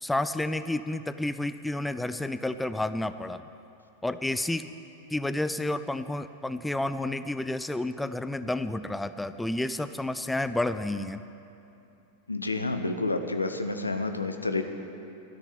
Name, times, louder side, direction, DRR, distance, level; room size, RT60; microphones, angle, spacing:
voice 1, 0.0-3.4 4.0-4.7 5.1-11.2, left 2 dB, 5° left, 11 dB, 0.3 m, -30 dB
voice 2, 12.3-14.6, left 3 dB, 80° left, 7 dB, 0.8 m, -29 dB
13.0 x 6.4 x 9.8 m, 2.8 s
figure-of-eight pair, 90°, 0 cm